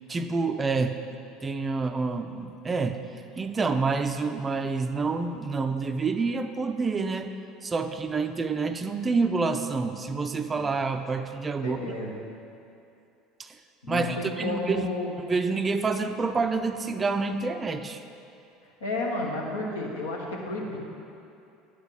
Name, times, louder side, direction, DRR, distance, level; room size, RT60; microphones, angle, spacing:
voice 1, 0.1-1.0 1.4-3.0 3.4-7.3 7.6-11.9 13.4-13.5 13.9-14.9 15.3-18.0, right 4 dB, 25° right, 8 dB, 0.5 m, -28 dB
voice 2, 11.6-12.1 13.8-15.1 18.8-20.8, left 2 dB, 75° left, -3 dB, 1.4 m, -31 dB
10.0 x 5.1 x 6.3 m, 2.6 s
figure-of-eight pair, 65°, 0 cm